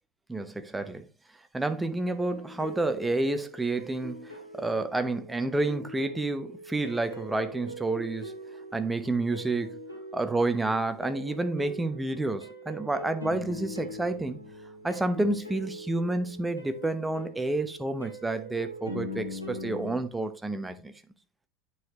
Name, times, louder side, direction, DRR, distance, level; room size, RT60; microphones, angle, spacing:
voice 1, 0.3-1.1 1.5-8.3 8.7-9.8 10.1-14.4 14.8-20.9, right 2 dB, 10° right, 0.9 m, -29 dB
sound 1, 2.1-20.0, equal, 85° left, 1.7 m, -42 dB
9.4 x 4.9 x 3.1 m
figure-of-eight pair, 75°, 0 cm